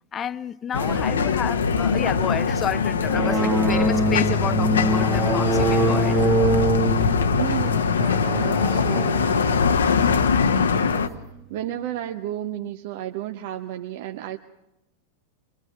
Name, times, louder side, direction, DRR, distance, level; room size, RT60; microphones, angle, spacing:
voice 1, 0.1-6.2, left 8 dB, 25° left, 0.7 m, -30 dB
sound 1, 0.7-11.1, left 5 dB, 70° left, 1.0 m, -22 dB
sound 2, 3.1-11.2, right 1 dB, 5° right, 1.1 m, -25 dB
voice 2, 7.0-11.2 11.5-14.4, right 12 dB, 50° right, 0.9 m, -33 dB
24.5 x 23.5 x 6.0 m
figure-of-eight pair, 90°, 0 cm